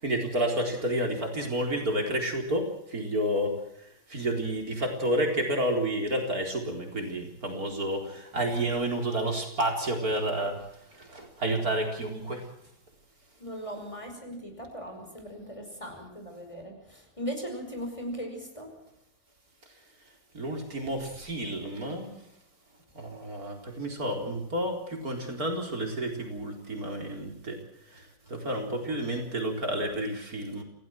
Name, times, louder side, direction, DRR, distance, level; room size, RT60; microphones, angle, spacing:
voice 1, 0.0-10.6 10.9-12.4 20.3-22.1 22.9-27.6 27.9-30.6, right 1 dB, 60° right, 2 dB, 4.7 m, -30 dB
voice 2, 13.4-18.7, equal, 20° left, 4 dB, 5.4 m, -38 dB
28.0 x 17.0 x 6.2 m, 0.74 s
omnidirectional pair, 1.8 m